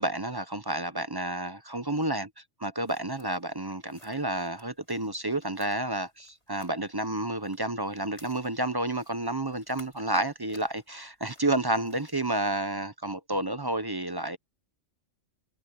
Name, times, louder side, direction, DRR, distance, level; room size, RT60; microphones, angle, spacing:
voice 1, 0.0-14.4, right 1 dB, 20° right, 0.7 m, -30 dB
sound 1, 2.8-12.5, left 1 dB, 30° left, 4.3 m, -60 dB
omnidirectional pair, 1.3 m